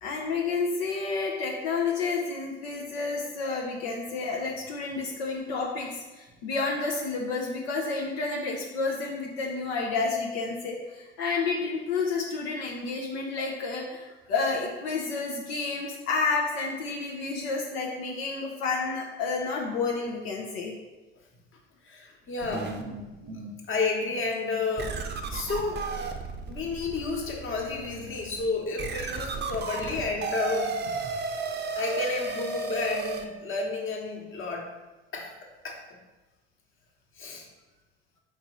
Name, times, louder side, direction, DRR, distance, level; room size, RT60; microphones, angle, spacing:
voice 1, 0.0-20.8 23.2-23.4, left 4 dB, 85° left, -1 dB, 0.7 m, -30 dB
voice 2, 21.8-22.7 23.3-24.9 25.3-25.9 26.5-30.8 31.7-34.7 35.1-35.3 35.6-35.8 37.1-37.5, left 3 dB, 40° left, 0 dB, 1.2 m, -31 dB
sound 1, 22.4-23.6 24.1-24.2 24.8-33.2, right 4 dB, 35° right, 0.6 m, -34 dB
4.0 x 2.7 x 4.6 m, 1.1 s
hypercardioid pair, 65°, 30 cm